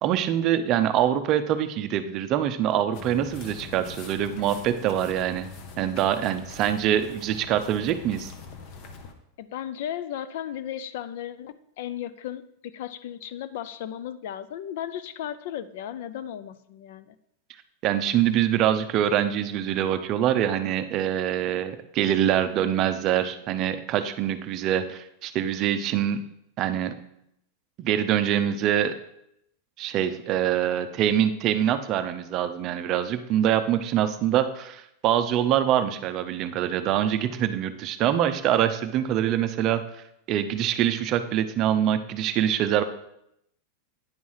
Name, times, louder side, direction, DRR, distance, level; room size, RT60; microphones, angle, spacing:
voice 1, 0.0-5.5 5.8-8.3 17.8-26.2 26.6-26.9 27.8-29.0 29.8-42.8, right 10 dB, 30° right, 9 dB, 0.5 m, -24 dB
sound 1, 2.9-9.1, left 5 dB, 40° left, 0.9 m, -42 dB
voice 2, 9.4-17.2, left 10 dB, 60° left, 15 dB, 0.5 m, -35 dB
9.6 x 4.8 x 5.6 m, 0.78 s
supercardioid pair, 165°, 0 cm